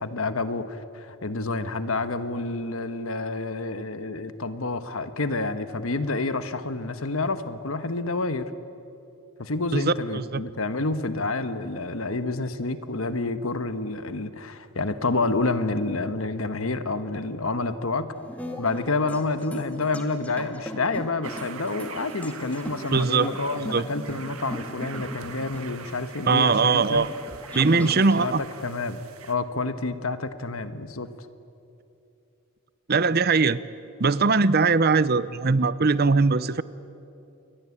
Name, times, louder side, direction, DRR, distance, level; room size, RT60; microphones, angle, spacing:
voice 1, 0.0-8.5 9.4-18.1 18.6-27.1 27.7-31.1, left 3 dB, 65° left, 10 dB, 1.3 m, -29 dB
voice 2, 9.7-10.4 22.9-23.3 23.7-23.9 26.3-27.1 27.5-28.4 32.9-33.6 34.0-36.6, right 4 dB, 45° right, 16 dB, 0.6 m, -21 dB
sound 1, 18.1-28.2, equal, 5° left, 2.1 m, -39 dB
sound 2, 21.2-29.3, right 6 dB, 70° right, 1.6 m, -43 dB
29.0 x 22.5 x 8.6 m, 2.8 s
head